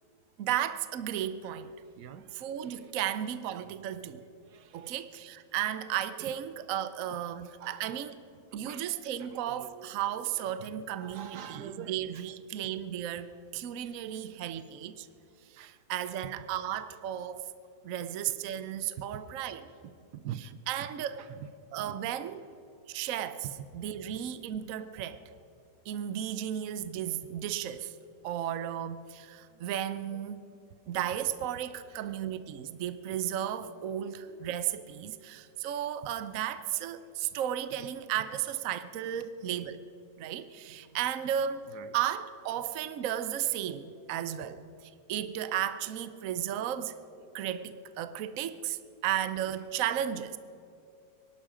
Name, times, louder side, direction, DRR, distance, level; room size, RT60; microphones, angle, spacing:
voice 1, 0.4-1.7 2.3-4.2 4.7-8.2 8.5-15.1 15.5-17.5 17.8-19.7 20.7-21.2 21.7-22.5 22.9-23.5 23.7-25.2 25.9-27.9 28.2-30.4 30.9-39.8 40.2-44.7 45.1-47.0 47.3-50.4, right 10 dB, 60° right, 1.0 m, -34 dB
voice 2, 2.0-2.3 2.6-3.0 4.2-4.9 6.2-6.3 7.6-8.0 8.5-8.9 9.2-12.3 13.8-14.5 15.6-16.3 19.0-19.2 19.8-20.9 21.2-21.5 21.8-22.0 23.4-23.5 25.0-25.1 27.0-27.1 29.5-29.6 31.9-32.1 34.0-34.4 37.8-37.9 41.7-42.0 47.1-47.3, right 9 dB, 75° right, 1.3 m, -46 dB
23.5 x 12.0 x 5.0 m
omnidirectional pair, 1.8 m